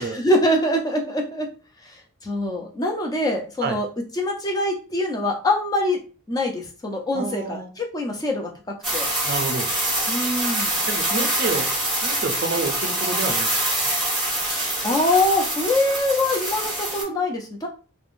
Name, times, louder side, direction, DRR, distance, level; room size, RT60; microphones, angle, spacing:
voice 1, 0.0-1.5 1.8-3.9 4.1-6.0 6.3-8.5 8.9-9.1 10.1-10.7 11.1-11.6 14.8-17.7, left 1 dB, 20° left, 1 dB, 0.5 m, -24 dB
voice 2, 7.1-7.7 9.2-9.7 10.8-11.7 12.0-13.5, right 3 dB, 45° right, 7 dB, 0.4 m, -28 dB
sound 1, 8.8-17.0, right 1 dB, ahead, 1.2 m, -25 dB
3.3 x 2.1 x 2.5 m, 0.36 s
head